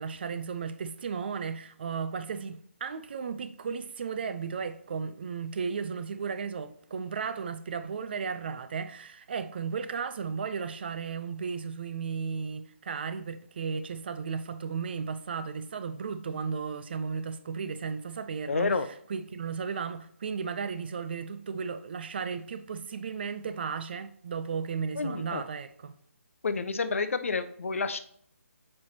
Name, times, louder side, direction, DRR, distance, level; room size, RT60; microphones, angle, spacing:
voice 1, 0.0-18.7 19.1-26.0, right 6 dB, 40° right, 0.5 m, -35 dB
voice 2, 18.5-18.9 25.0-25.4 26.4-28.0, left 4 dB, 60° left, 0.7 m, -29 dB
6.7 x 5.3 x 2.9 m
figure-of-eight pair, 150°, 8 cm